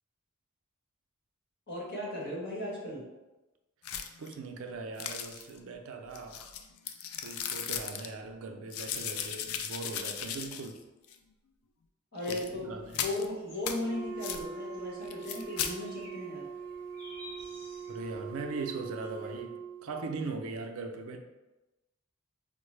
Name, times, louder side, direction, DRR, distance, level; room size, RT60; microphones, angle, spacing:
voice 1, 1.7-3.1 12.1-16.5, left 1 dB, 50° left, -5 dB, 1.2 m, -37 dB
sound 1, 3.8-4.3 5.0-5.6 6.1-8.1 8.7-10.8 11.1-11.2 12.2-12.5 12.9-13.2 13.6-13.8 14.2-14.4 15.1-15.7, left 8 dB, 85° left, 0.3 m, -37 dB
voice 2, 4.2-6.4 7.2-10.8 12.3-13.1 17.9-21.2, right 3 dB, 75° right, 4 dB, 0.4 m, -40 dB
sound 2, 12.3-19.4, left 1 dB, 35° left, 1.4 m, -55 dB
Wind instrument woodwind instrument, 13.7-19.9, right 6 dB, 10° right, 0.6 m, -42 dB
4.4 x 2.0 x 3.2 m, 1.1 s
head